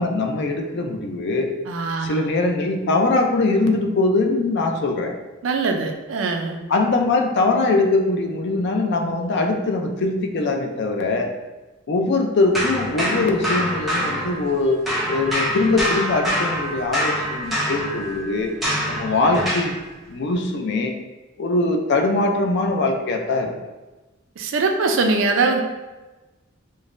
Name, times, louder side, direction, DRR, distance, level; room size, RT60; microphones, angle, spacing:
voice 1, 0.0-1.5 2.0-5.1 6.7-11.3 11.9-14.8 15.1-18.5 18.9-19.7 20.1-20.9 21.4-23.5, left 3 dB, 60° left, 4 dB, 0.4 m, -21 dB
voice 2, 1.7-2.2 5.4-6.6 24.4-25.6, right 3 dB, 70° right, 4 dB, 0.4 m, -22 dB
sound 1, 12.5-14.6 14.9-19.8, equal, ahead, 0.7 m, -25 dB
5.2 x 2.1 x 2.5 m, 1.1 s
head